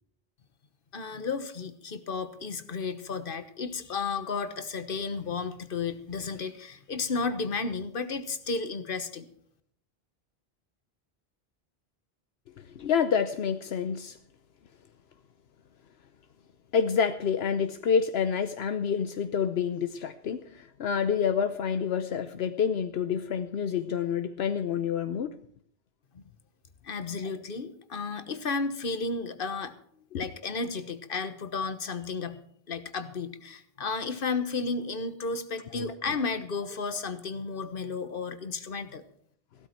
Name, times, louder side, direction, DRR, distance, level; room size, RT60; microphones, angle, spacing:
voice 1, 0.9-9.3 26.1-26.2 26.8-29.7 30.1-32.4 32.7-39.0, left 4 dB, 55° left, 11 dB, 1.4 m, -33 dB
voice 2, 12.6-14.2 16.7-25.3 30.1-30.2 35.7-35.9, left 7 dB, 80° left, 9 dB, 1.0 m, -28 dB
16.0 x 12.5 x 4.5 m, 0.66 s
omnidirectional pair, 1.1 m